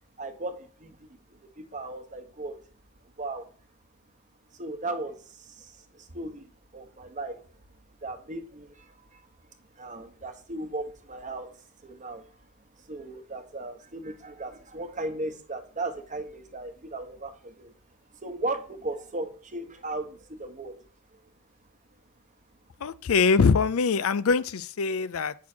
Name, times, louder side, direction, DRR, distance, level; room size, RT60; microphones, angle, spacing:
voice 1, 0.2-2.6 3.2-3.5 4.5-7.4 8.0-9.2 9.7-12.2 12.9-17.7 18.2-20.8 21.1-21.2, right 2 dB, 35° right, 1.0 m, -37 dB
voice 2, 22.8-25.4, left 5 dB, 70° left, 0.5 m, -23 dB
8.5 x 6.1 x 4.4 m
head